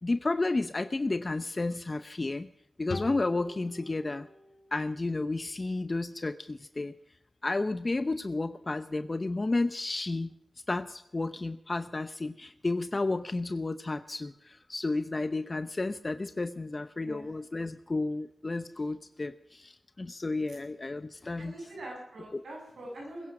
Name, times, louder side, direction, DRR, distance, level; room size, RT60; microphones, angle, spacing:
voice 1, 0.0-2.5 2.8-4.3 4.7-6.9 7.4-10.4 10.7-21.7 22.3-22.4, left 2 dB, 40° left, 11 dB, 0.8 m, -32 dB
sound 1, 2.9-6.2, left 3 dB, 75° left, 2.6 m, -44 dB
voice 2, 21.4-23.3, right 1 dB, 85° right, -1 dB, 7.8 m, -43 dB
21.0 x 10.5 x 6.1 m, 0.80 s
cardioid pair, 50°, 0 cm